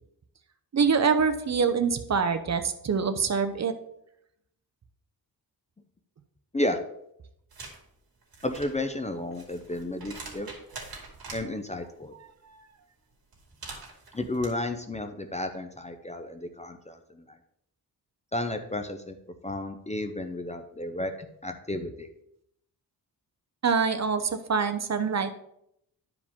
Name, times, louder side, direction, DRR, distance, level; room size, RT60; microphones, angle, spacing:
voice 1, 0.7-3.7 23.6-25.3, right 5 dB, 40° right, 9 dB, 0.7 m, -25 dB
sound 1, 7.5-7.8 8.2-11.4 13.3-14.5, right 3 dB, 60° right, 2.4 m, -44 dB
voice 2, 8.4-10.5 11.3-12.1 14.1-17.4 18.3-19.2 19.4-21.1 21.4-22.1, left 1 dB, 20° left, 7 dB, 0.5 m, -32 dB
11.5 x 4.9 x 3.6 m, 0.76 s
wide cardioid pair, 145°, 40 cm